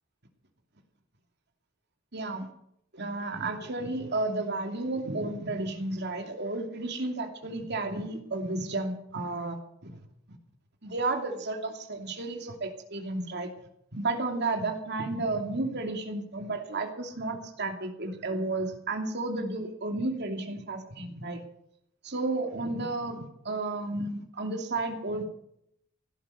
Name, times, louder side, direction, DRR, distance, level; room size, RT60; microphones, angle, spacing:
voice 1, 2.1-2.5 2.9-10.0 10.8-13.5 13.9-21.4 22.0-25.2, right 2 dB, 55° right, 4 dB, 2.7 m, -32 dB
16.5 x 11.5 x 6.7 m, 0.74 s
head